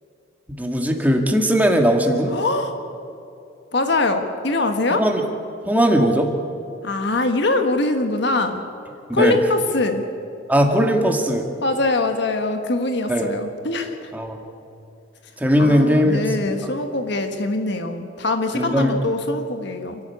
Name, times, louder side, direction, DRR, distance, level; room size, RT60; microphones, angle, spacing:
voice 1, 0.5-2.3 4.9-5.2 5.7-6.3 9.1-9.4 10.5-11.5 13.1-13.3 14.1-14.4 15.4-16.6 18.5-19.0, equal, 10° right, 2 dB, 2.0 m, -19 dB
voice 2, 2.3-2.8 3.7-5.0 6.8-8.6 9.1-10.1 11.6-14.1 15.6-20.0, left 2 dB, 65° left, 6 dB, 1.5 m, -23 dB
28.0 x 12.0 x 8.6 m, 2.8 s
head